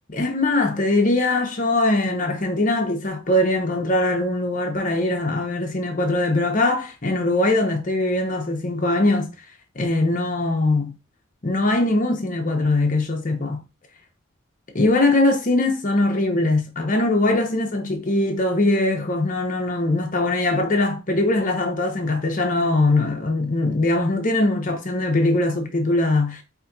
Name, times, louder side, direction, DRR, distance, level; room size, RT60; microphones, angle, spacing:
voice 1, 0.1-9.3 9.8-11.0 11.4-13.6 14.7-26.4, left 2 dB, 40° left, 0.9 m, -21 dB
4.8 x 2.8 x 2.7 m
head